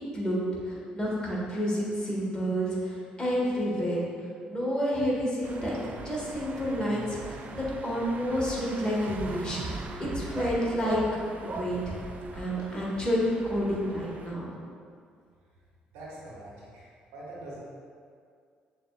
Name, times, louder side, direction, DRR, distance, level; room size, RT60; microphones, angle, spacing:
voice 1, 0.1-4.0 4.5-11.0 11.4-11.9 12.3-14.5, equal, 20° left, -6 dB, 1.5 m, -29 dB
sound 1, 5.4-14.3, right 3 dB, 40° right, 0.3 m, -40 dB
voice 2, 15.9-16.9 17.1-17.6, right 1 dB, 75° right, -6 dB, 0.9 m, -43 dB
6.4 x 2.4 x 2.4 m, 2.2 s
hypercardioid pair, 50°, 4 cm